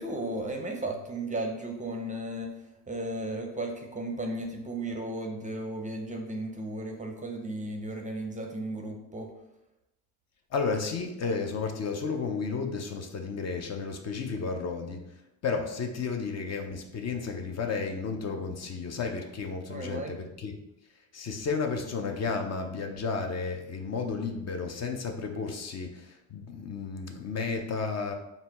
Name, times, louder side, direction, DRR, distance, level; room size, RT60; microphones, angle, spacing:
voice 1, 0.0-2.5 2.9-9.3 19.7-20.1, right 1 dB, 20° right, 3 dB, 0.5 m, -35 dB
voice 2, 10.5-15.0 15.4-20.5 21.1-28.1, left 4 dB, 40° left, 4 dB, 0.5 m, -32 dB
4.1 x 2.3 x 4.1 m, 0.89 s
cardioid pair, 95°, 41 cm